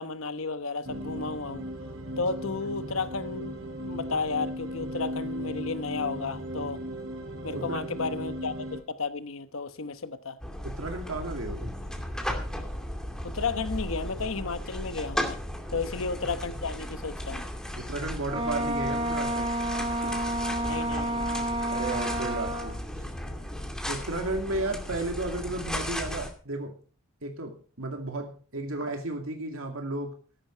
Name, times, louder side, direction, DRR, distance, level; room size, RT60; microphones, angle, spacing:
voice 1, 0.0-1.7 2.2-6.8 7.4-10.4 13.2-15.4 15.7-17.5 20.7-21.3, left 4 dB, 75° left, 1.1 m, -33 dB
sound 1, 0.8-8.8, equal, 70° right, 4.2 m, -36 dB
voice 2, 7.5-7.8 10.6-11.7 17.8-20.4 21.7-22.8 23.9-26.8 27.2-30.1, right 2 dB, 85° right, 2.4 m, -34 dB
sound 2, 10.4-26.3, equal, 5° left, 2.3 m, -35 dB
Wind instrument woodwind instrument, 18.3-22.8, right 1 dB, 25° right, 1.5 m, -30 dB
14.0 x 11.5 x 4.5 m
head